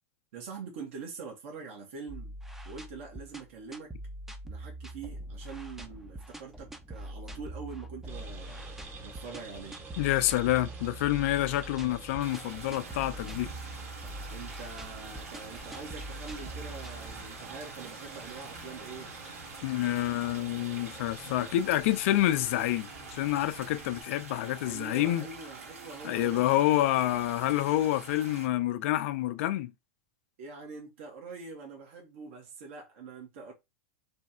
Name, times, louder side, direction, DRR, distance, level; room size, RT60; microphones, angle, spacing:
voice 1, 0.3-2.3 2.6-3.9 4.4-9.8 14.3-19.1 24.6-26.4 26.9-27.3 30.4-33.5, right 5 dB, 65° right, 1.3 m, -44 dB
sound 1, 2.1-17.7, right 1 dB, 5° right, 0.6 m, -43 dB
sound 2, 8.1-24.0, right 3 dB, 30° right, 1.0 m, -48 dB
voice 2, 10.0-13.5 19.6-25.3 26.0-29.7, left 14 dB, 65° left, 0.5 m, -28 dB
sound 3, 12.2-28.5, right 3 dB, 85° right, 1.5 m, -47 dB
3.4 x 2.3 x 4.2 m
hypercardioid pair, 115°, 8 cm